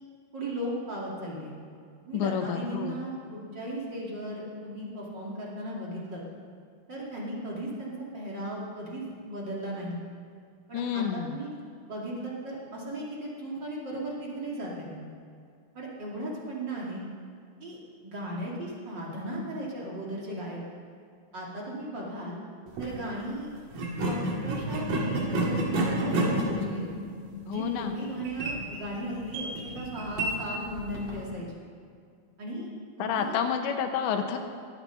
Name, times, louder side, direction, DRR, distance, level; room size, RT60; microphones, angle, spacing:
voice 1, 0.3-1.5 2.0-6.2 6.9-10.0 10.7-11.6 11.9-15.0 15.7-17.0 17.6-20.6 21.3-22.4 22.8-23.5 24.1-26.8 27.4-31.5 32.4-32.7 33.0-33.4, right 1 dB, 35° right, -4 dB, 1.9 m, -36 dB
voice 2, 2.1-3.0 10.7-11.4 27.5-27.9 33.0-34.4, left 8 dB, 80° left, 6 dB, 3.1 m, -29 dB
sound 1, 22.7-22.9 23.7-31.2, right 1 dB, 55° right, 3.1 m, -31 dB
21.0 x 8.3 x 5.7 m, 2.2 s
omnidirectional pair, 5.4 m